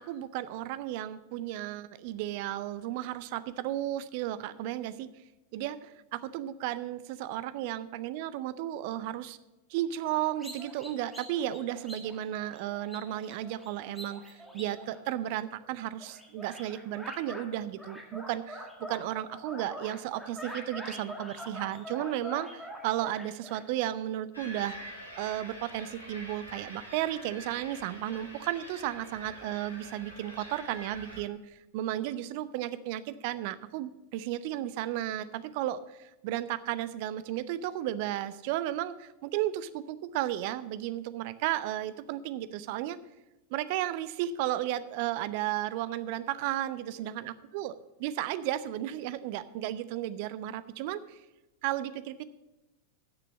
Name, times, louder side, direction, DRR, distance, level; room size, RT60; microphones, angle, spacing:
voice 1, 0.0-5.1 5.5-9.4 9.7-24.8 25.2-43.0 43.5-47.7 48.0-51.2 51.6-52.2, right 13 dB, 45° right, 15 dB, 0.5 m, -34 dB
sound 1, 10.4-15.6 16.0-17.5 17.8-23.6, equal, ahead, 1.9 m, -44 dB
sound 2, 24.3-31.2, equal, 90° right, 2.9 m, -46 dB
9.4 x 6.8 x 7.3 m, 1.0 s
figure-of-eight pair, 90°, 0 cm